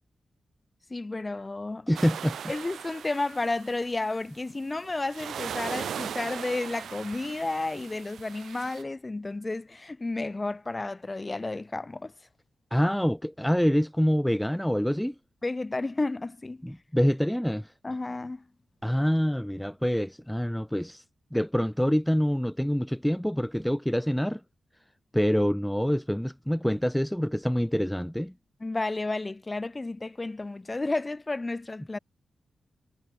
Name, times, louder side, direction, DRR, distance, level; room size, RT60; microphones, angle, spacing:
voice 1, 0.9-1.9 2.5-12.1 15.4-16.7 17.8-18.5 28.6-32.0, left 2 dB, 25° left, 2.0 m, -32 dB
voice 2, 1.9-2.4 12.7-15.1 16.6-17.7 18.8-21.0 21.3-24.4 25.1-28.3, equal, 5° left, 1.4 m, -26 dB
sound 1, 1.9-4.1 4.7-8.8, right 8 dB, 90° right, 4.1 m, -39 dB
wide cardioid pair, 110°, 0 cm